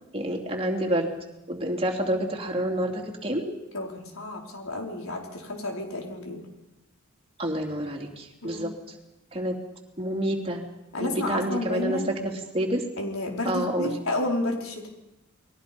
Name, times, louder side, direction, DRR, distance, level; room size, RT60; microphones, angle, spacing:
voice 1, 0.1-1.1 1.5-3.5 7.4-8.9 9.3-9.6 10.0-10.6 11.0-12.8 13.4-13.9, right 1 dB, 30° right, 1 dB, 3.3 m, -28 dB
voice 2, 3.7-6.4 8.4-8.7 10.9-12.1 13.0-14.9, left 1 dB, 90° left, 1 dB, 4.9 m, -31 dB
29.5 x 21.5 x 5.4 m, 0.92 s
head